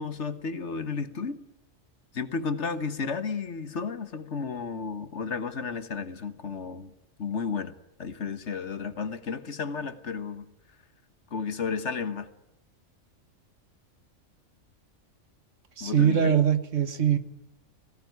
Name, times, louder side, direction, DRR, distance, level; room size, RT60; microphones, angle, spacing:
voice 1, 0.0-1.4 2.1-6.9 7.2-7.7 8.0-10.5 11.3-12.3 15.8-16.4, left 5 dB, 65° left, 1.7 m, -33 dB
voice 2, 15.8-17.2, right 8 dB, 75° right, 1.8 m, -22 dB
18.0 x 18.0 x 9.5 m
omnidirectional pair, 1.3 m